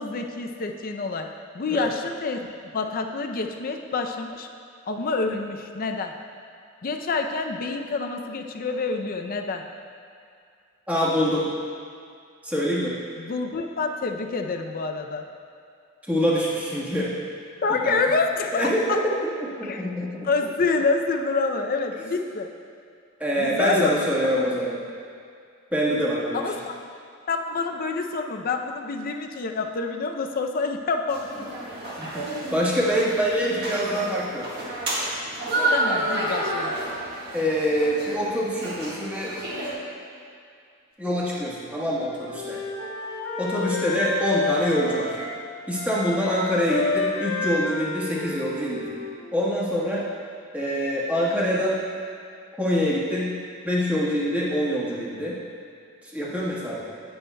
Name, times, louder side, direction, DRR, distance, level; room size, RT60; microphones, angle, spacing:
voice 1, 0.0-2.5 2.7-4.5 4.9-6.1 6.8-9.6 13.2-15.3 17.6-19.0 19.6-19.9 20.2-22.5 23.4-23.9 24.4-24.5 26.3-26.7 27.3-31.5 35.7-36.7, left 4 dB, 45° left, 4 dB, 0.5 m, -27 dB
voice 2, 10.9-11.5 12.4-13.0 16.1-17.1 17.7-18.1 18.5-20.3 23.2-24.8 25.7-26.5 32.0-34.5 37.3-39.4 41.0-42.6 43.4-45.2 45.7-48.9 49.3-50.1 50.5-51.8 52.6-53.3 53.6-55.4 56.0-56.8, equal, 5° right, -7 dB, 1.3 m, -25 dB
sound 1, 31.1-39.7, right 1 dB, 50° right, 1.6 m, -30 dB
Wind instrument woodwind instrument, 41.9-45.4 45.7-49.5, left 3 dB, 80° left, 1.2 m, -30 dB
9.8 x 9.0 x 2.2 m, 2.3 s
head